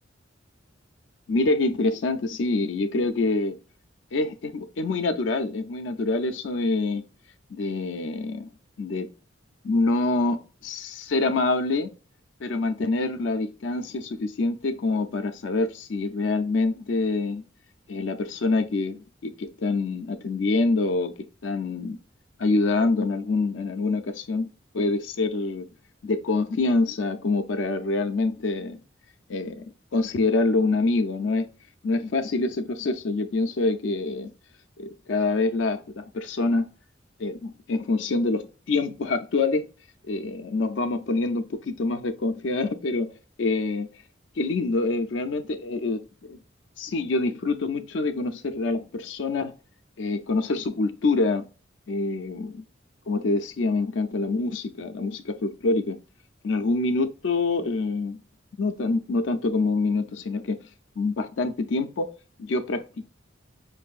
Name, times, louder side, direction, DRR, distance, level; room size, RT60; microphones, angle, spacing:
voice 1, 1.3-3.6 4.1-7.0 7.5-8.5 8.8-9.1 9.6-11.9 12.4-17.4 17.9-22.0 22.4-24.5 24.7-25.7 26.0-28.8 29.3-29.6 29.9-31.5 31.8-34.3 34.8-36.7 37.2-39.6 40.1-43.1 43.4-43.9 44.4-46.4 46.8-49.5 50.0-51.4 51.9-52.6 53.1-56.0 56.4-58.2 58.6-60.6 61.0-62.1 62.4-63.1, left 3 dB, 70° left, 0.4 m, -26 dB
5.3 x 2.6 x 2.3 m
head